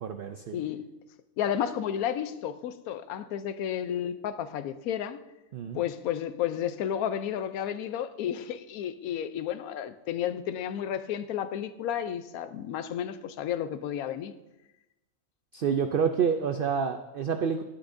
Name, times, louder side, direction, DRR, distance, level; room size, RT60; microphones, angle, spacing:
voice 1, 0.0-0.6 5.5-5.8 15.5-17.6, right 6 dB, 75° right, 7 dB, 0.5 m, -28 dB
voice 2, 0.5-0.8 1.4-5.2 5.7-14.3, left 9 dB, 80° left, 12 dB, 1.1 m, -32 dB
11.5 x 11.5 x 2.6 m, 0.99 s
omnidirectional pair, 1.5 m